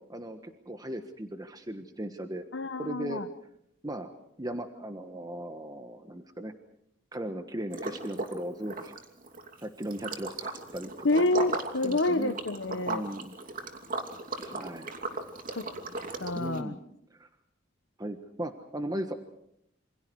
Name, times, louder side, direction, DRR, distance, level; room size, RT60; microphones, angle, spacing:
voice 1, 0.1-2.4 2.8-3.2 3.8-4.1 4.4-6.5 7.1-9.0 9.6-11.2 11.8-12.4 12.9-13.4 14.4-14.9 16.3-16.8 17.1-17.3 18.0-19.1, right 1 dB, 20° right, 6 dB, 1.4 m, -37 dB
voice 2, 2.5-3.3 11.0-13.0 15.6-15.7 16.2-16.7, left 2 dB, 80° left, 7 dB, 1.2 m, -28 dB
Liquid, 7.7-8.4 8.6-16.6, right 3 dB, 50° right, 2.8 m, -37 dB
28.0 x 26.5 x 4.8 m, 0.77 s
head